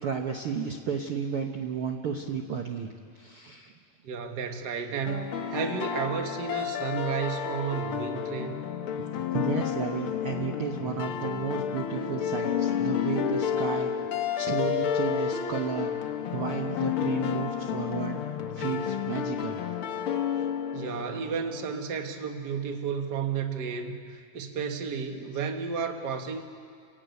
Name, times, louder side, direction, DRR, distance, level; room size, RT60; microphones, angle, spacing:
voice 1, 0.0-3.7 9.0-13.9 14.4-16.0 16.3-18.2 18.5-19.6 20.3-20.5, right 6 dB, 75° right, 3 dB, 1.3 m, -33 dB
voice 2, 4.0-5.2 5.5-8.6 20.7-26.4, right 6 dB, 55° right, 5 dB, 1.1 m, -32 dB
sound 1, 5.1-22.0, left 8 dB, 90° left, 1.1 m, -31 dB
29.5 x 17.0 x 9.5 m, 2.2 s
omnidirectional pair, 4.2 m